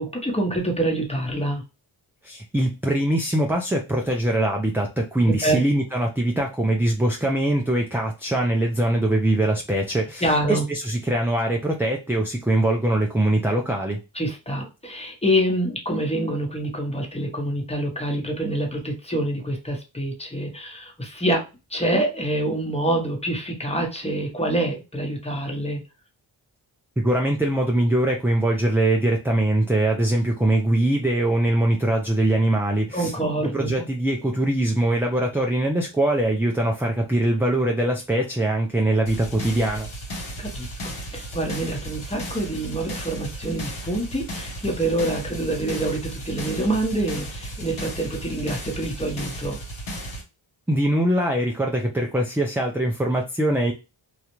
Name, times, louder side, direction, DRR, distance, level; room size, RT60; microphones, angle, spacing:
voice 1, 0.0-1.6 5.3-5.6 10.2-10.6 14.1-21.4 21.7-25.8 32.9-33.7 40.4-49.6, right 1 dB, 15° left, 1 dB, 0.9 m, -26 dB
voice 2, 2.2-14.0 27.0-39.9 50.7-53.7, right 1 dB, 5° right, 1 dB, 0.3 m, -22 dB
sound 1, 39.1-50.2, right 1 dB, 70° left, 1.0 m, -34 dB
2.4 x 2.0 x 3.0 m, 0.27 s
cardioid pair, 50°, 50 cm